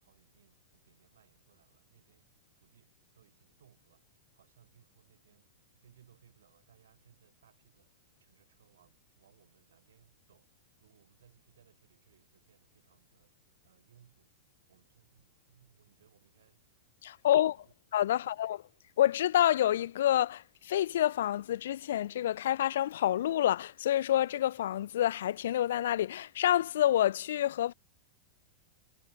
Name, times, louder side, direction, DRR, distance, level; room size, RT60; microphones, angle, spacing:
voice 1, 0.0-13.3 13.6-14.3 14.7-16.7 17.1-17.7 18.1-18.4, right 9 dB, 75° right, 7.8 m, -66 dB
voice 2, 17.0-17.5 17.9-18.6 19.0-27.7, left 12 dB, 70° left, 0.4 m, -28 dB
hypercardioid pair, 105°, 0 cm